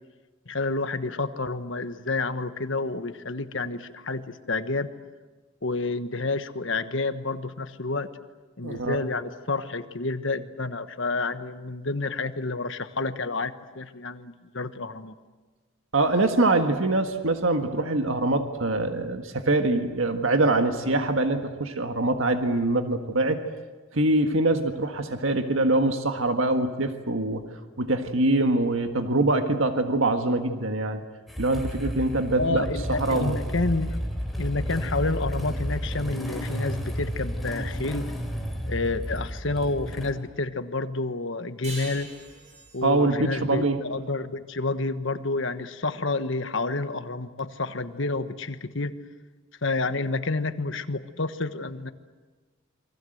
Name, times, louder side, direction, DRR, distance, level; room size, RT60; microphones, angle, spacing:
voice 1, 0.5-4.9 5.6-8.1 8.6-15.2 32.3-34.0 34.4-38.1 38.7-42.1 42.7-48.9 49.6-51.9, left 3 dB, 65° left, 10 dB, 1.3 m, -29 dB
voice 2, 8.6-9.0 15.9-23.4 23.9-27.4 27.8-31.0 31.4-32.7 33.0-33.3 42.8-43.8, right 2 dB, 75° right, 6 dB, 1.6 m, -24 dB
Motorcycle / Engine starting, 31.3-40.1, equal, ahead, 3.4 m, -32 dB
sound 1, 41.6-44.8, right 2 dB, 35° right, 7.9 m, -44 dB
28.5 x 24.0 x 7.9 m, 1.3 s
head